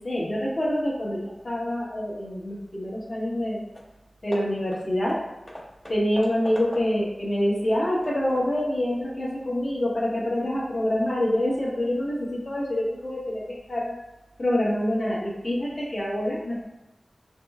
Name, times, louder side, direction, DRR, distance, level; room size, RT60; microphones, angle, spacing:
voice 1, 0.0-3.6 4.2-5.2 5.9-13.4 13.7-13.9 14.4-16.6, left 1 dB, 50° left, -6 dB, 1.4 m, -26 dB
Hammer / Wood, 3.4-3.5 3.7-4.0 4.3-7.2 7.6-8.7, equal, 20° left, 0.7 m, -42 dB
4.3 x 3.2 x 2.4 m, 1.0 s
wide cardioid pair, 65°, 0 cm